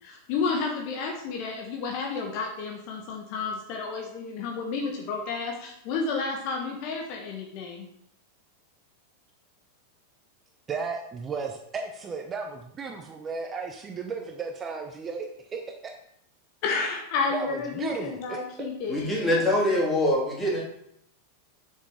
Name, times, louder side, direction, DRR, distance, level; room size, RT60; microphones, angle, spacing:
voice 1, 0.0-7.9 16.6-19.4, left 4 dB, 45° left, 2 dB, 1.2 m, -31 dB
voice 2, 10.7-15.3 15.5-15.9 17.3-18.7, right 5 dB, 20° right, 3 dB, 0.8 m, -34 dB
voice 3, 18.9-20.6, left 1 dB, 15° left, -4 dB, 3.1 m, -24 dB
7.2 x 6.6 x 3.7 m, 0.74 s
figure-of-eight pair, 90°, 0 cm